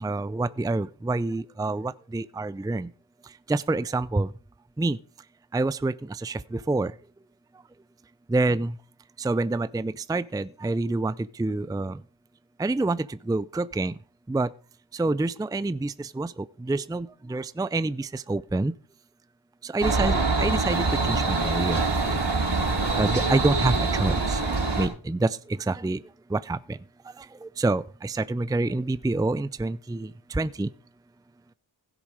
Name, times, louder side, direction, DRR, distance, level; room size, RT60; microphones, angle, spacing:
voice 1, 0.0-2.9 3.5-4.3 4.8-5.0 5.5-5.9 6.2-6.4 6.7-6.9 8.3-8.7 9.2-11.1 11.4-11.9 12.6-13.0 13.3-13.9 14.3-14.5 15.0-16.3 16.7-18.7 19.7-21.8 22.9-24.4 24.8-25.3 25.7-26.0 26.3-26.6 27.6-30.1 30.3-30.7, right 2 dB, 10° right, 0.5 m, -27 dB
sound 1, 19.8-24.9, right 3 dB, 60° right, 4.4 m, -24 dB
16.0 x 7.0 x 4.9 m
cardioid pair, 45°, 47 cm